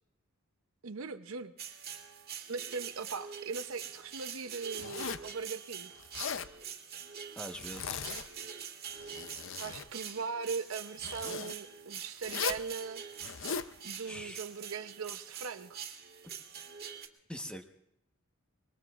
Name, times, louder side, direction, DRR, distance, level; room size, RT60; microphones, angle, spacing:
voice 1, 0.8-1.8 2.5-5.9 9.5-13.0 13.8-15.8, right 5 dB, 80° right, 9 dB, 0.7 m, -40 dB
sound 1, 1.6-17.1, right 8 dB, 45° right, 1.9 m, -45 dB
Zipper (clothing), 4.8-5.3 6.0-6.5 7.5-8.3 8.9-9.9 11.0-11.5 12.2-12.7 13.2-13.7, left 6 dB, 65° left, 0.6 m, -38 dB
voice 2, 7.4-8.0 14.0-14.4 17.3-17.6, equal, 5° left, 5 dB, 1.1 m, -43 dB
26.0 x 22.5 x 2.4 m, 0.80 s
head